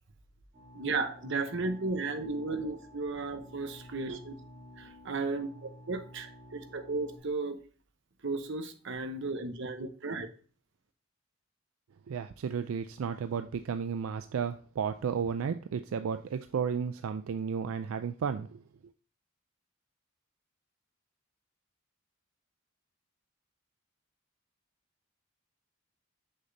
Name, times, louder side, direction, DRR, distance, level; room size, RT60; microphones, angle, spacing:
sound 1, 0.5-7.2, left 1 dB, 35° right, 1.6 m, -52 dB
voice 1, 0.7-4.3 4.8-7.6 8.2-10.3, right 3 dB, 60° right, 8 dB, 0.8 m, -34 dB
voice 2, 12.1-18.6, right 6 dB, 85° right, 9 dB, 0.4 m, -33 dB
6.3 x 5.8 x 2.6 m, 0.40 s
head